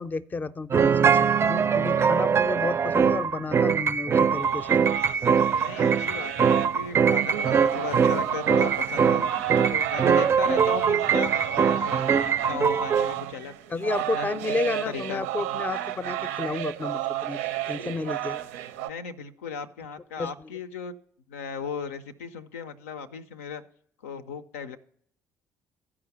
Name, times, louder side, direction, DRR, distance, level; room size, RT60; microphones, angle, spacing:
voice 1, 0.0-4.8 13.7-18.5 20.2-20.3, left 3 dB, 25° left, 16 dB, 0.5 m, -32 dB
sound 1, 0.7-13.1, right 6 dB, 35° right, 0.4 m, -22 dB
sound 2, 4.2-18.9, right 13 dB, 85° right, 0.5 m, -32 dB
voice 2, 5.5-9.2 9.7-13.5 14.1-14.3 14.9-15.3 18.8-20.9 21.3-23.6 24.0-24.8, left 6 dB, 85° left, 10 dB, 0.5 m, -36 dB
12.0 x 4.9 x 6.7 m, 0.65 s
hypercardioid pair, 55°, 7 cm